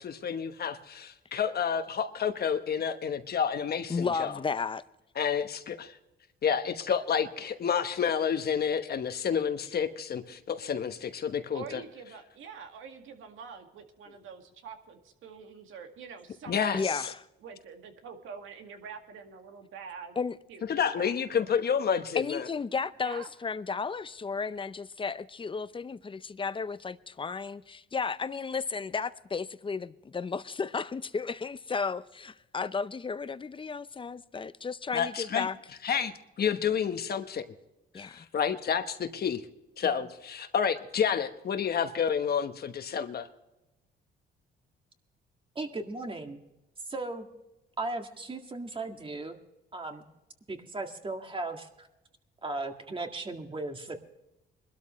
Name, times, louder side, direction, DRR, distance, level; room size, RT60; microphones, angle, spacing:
voice 1, 0.0-4.4 5.2-6.0 6.4-11.8 16.5-17.0 20.7-22.5 34.9-35.5 35.8-37.5 38.0-39.4 39.8-43.3, left 7 dB, 50° left, 1.2 m, -29 dB
voice 2, 3.9-4.8 16.7-17.2 20.2-20.4 22.2-35.6 37.9-38.3, left 5 dB, 25° left, 0.7 m, -33 dB
voice 3, 11.5-17.0 17.4-20.2 20.5-20.7 20.9-21.2 23.0-23.3, right 6 dB, 85° right, 2.0 m, -46 dB
voice 4, 45.6-46.4 46.9-47.3 47.8-49.4 49.7-50.1 50.5-51.9 52.4-54.0, right 2 dB, 25° right, 1.9 m, -36 dB
22.5 x 12.5 x 3.2 m
cardioid pair, 90°, 20 cm